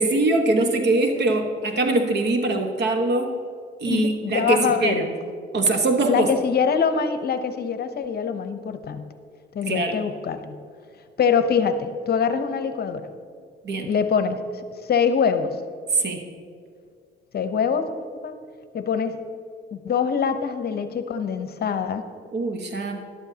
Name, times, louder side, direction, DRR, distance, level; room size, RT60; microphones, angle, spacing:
voice 1, 0.0-3.3 3.8-5.1 5.5-6.3 9.6-10.0 13.6-13.9 15.9-16.3 22.3-23.0, right 2 dB, 60° right, 5 dB, 1.3 m, -22 dB
voice 2, 3.9-5.1 6.1-9.1 9.5-10.6 11.2-13.1 13.8-15.6 17.3-17.9 18.2-18.3 18.7-19.2 19.7-22.0, left 6 dB, 55° left, 9 dB, 0.8 m, -24 dB
12.5 x 12.0 x 2.8 m, 2.2 s
cardioid pair, 90°, 20 cm